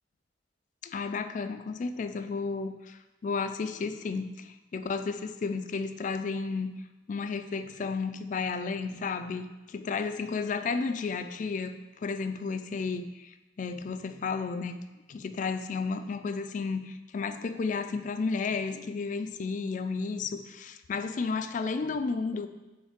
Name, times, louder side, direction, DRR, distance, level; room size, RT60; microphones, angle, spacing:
voice 1, 0.8-6.8 7.1-11.8 12.0-14.8 15.1-22.5, left 4 dB, 40° left, 10 dB, 0.3 m, -32 dB
5.2 x 4.1 x 5.1 m, 1.1 s
head